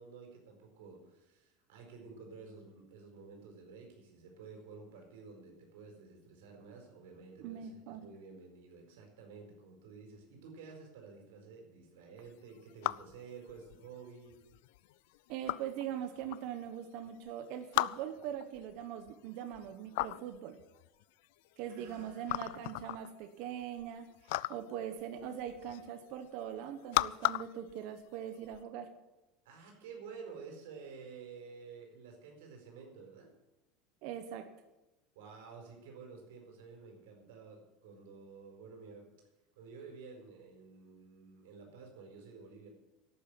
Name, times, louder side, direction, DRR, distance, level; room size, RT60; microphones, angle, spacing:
voice 1, 0.0-14.4 21.7-22.7 29.4-33.3 35.1-39.1 39.6-42.7, right 5 dB, 90° right, 2 dB, 4.6 m, -51 dB
voice 2, 7.4-8.1 15.3-20.6 21.6-28.9 34.0-34.4, right 9 dB, 60° right, 7 dB, 1.3 m, -42 dB
sound 1, 12.3-28.6, left 19 dB, 80° left, 0.4 m, -39 dB
12.0 x 8.8 x 9.2 m, 1.0 s
supercardioid pair, 135°, 0 cm